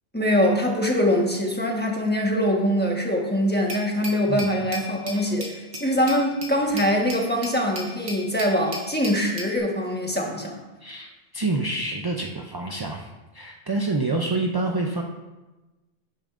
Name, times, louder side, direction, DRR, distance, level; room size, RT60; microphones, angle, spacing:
voice 1, 0.1-10.6, equal, 10° left, -1 dB, 1.2 m, -23 dB
Glass, 3.7-9.6, equal, 55° right, 1.6 m, -37 dB
voice 2, 11.3-15.0, right 2 dB, 35° right, 1 dB, 0.3 m, -27 dB
11.0 x 8.7 x 2.5 m, 1.1 s
omnidirectional pair, 1.2 m